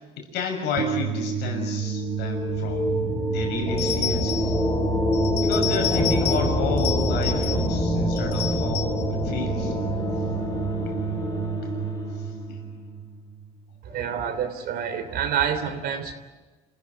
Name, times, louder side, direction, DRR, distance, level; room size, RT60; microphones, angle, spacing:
voice 1, 0.2-3.0 3.3-4.5 5.4-9.8 12.5-12.6 13.9-14.0, left 4 dB, 90° left, 4 dB, 6.3 m, -31 dB
sound 1, 0.8-13.9, right 6 dB, 85° right, 1.7 m, -30 dB
sound 2, 1.9-12.4, left 1 dB, 20° left, 4.9 m, -27 dB
sound 3, 3.8-4.6 5.1-6.5 6.8-7.8 8.2-9.0, left 10 dB, 70° left, 3.4 m, -31 dB
voice 2, 13.8-16.1, right 8 dB, 70° right, 9 dB, 3.2 m, -27 dB
27.5 x 15.5 x 9.8 m, 1.2 s
cardioid pair, 110°, 17 cm